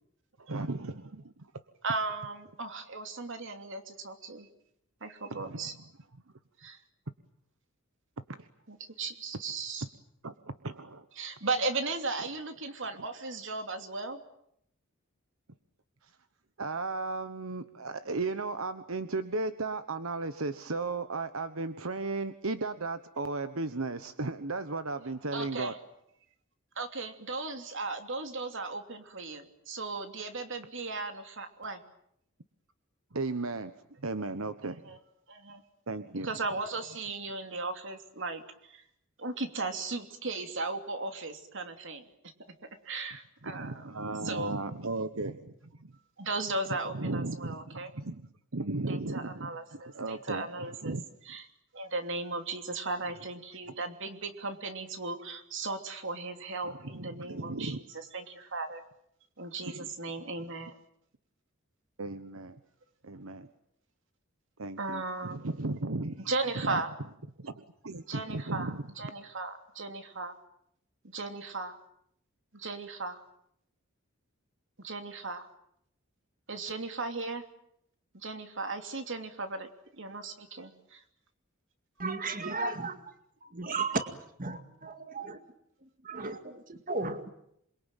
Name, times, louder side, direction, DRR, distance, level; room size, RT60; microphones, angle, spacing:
voice 1, 0.4-1.5 5.3-5.7 8.3-8.5 10.2-10.3 10.6-11.0 16.6-25.7 33.1-33.7 34.0-34.8 35.9-36.3 43.4-45.5 45.8-45.9 46.9-48.2 48.5-50.4 50.8-51.0 56.6-57.8 59.6-59.9 62.0-62.6 63.0-63.5 64.6-66.3 66.6-66.8 67.4-68.8, right 3 dB, 80° right, 10 dB, 1.2 m, -35 dB
voice 2, 1.8-4.5 5.0-5.7 6.6-6.8 8.7-9.8 11.2-14.2 25.3-25.8 26.7-31.8 34.6-35.0 35.3-35.6 36.2-38.8 39.2-42.1 42.8-44.0 44.2-44.5 46.2-47.9 48.9-50.9 51.3-51.5 51.7-58.8 59.4-60.8 64.8-65.7 66.3-66.9 68.1-70.4 71.0-71.8 72.5-73.2 74.8-75.5 76.5-77.4 78.1-81.0, right 3 dB, 65° right, 7 dB, 3.0 m, -36 dB
voice 3, 82.0-83.0 83.5-84.1 84.4-85.4 85.8-87.3, right 3 dB, 40° right, 8 dB, 2.1 m, -34 dB
27.5 x 22.5 x 9.2 m, 0.75 s
head